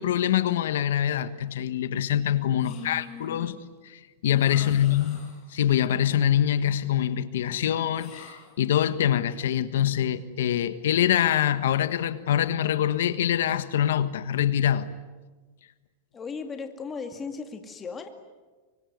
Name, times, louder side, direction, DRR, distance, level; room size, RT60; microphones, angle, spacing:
voice 1, 0.0-3.6 3.8-14.9, left 10 dB, 85° left, 1.4 m, -24 dB
voice 2, 2.5-3.7 4.6-5.1 16.1-18.1, left 5 dB, 15° left, 2.2 m, -38 dB
sound 1, 2.6-3.4 4.3-5.6 7.9-8.7, left 5 dB, 30° left, 6.6 m, -49 dB
24.5 x 24.5 x 9.5 m
supercardioid pair, 160°, 0 cm